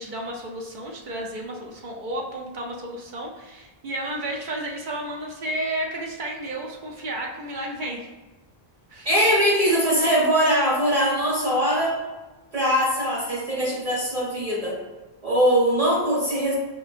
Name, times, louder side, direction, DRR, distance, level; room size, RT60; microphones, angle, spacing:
voice 1, 0.0-8.1 8.9-9.1, right 1 dB, 55° right, 0 dB, 0.7 m, -32 dB
voice 2, 9.0-12.0 12.5-14.8 15.2-16.5, equal, 35° right, -5 dB, 1.5 m, -21 dB
5.4 x 2.6 x 2.5 m, 1.2 s
omnidirectional pair, 1.0 m